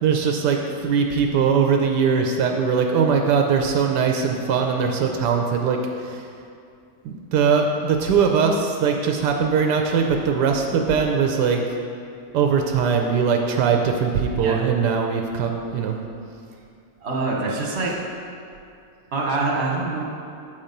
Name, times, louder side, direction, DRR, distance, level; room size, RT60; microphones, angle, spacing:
voice 1, 0.0-6.3 7.0-11.6 12.3-16.0, right 6 dB, 80° right, 3 dB, 1.2 m, -21 dB
voice 2, 17.0-17.9 19.1-20.0, right 3 dB, 45° right, -2 dB, 1.3 m, -25 dB
8.2 x 4.3 x 5.1 m, 2.4 s
omnidirectional pair, 1.8 m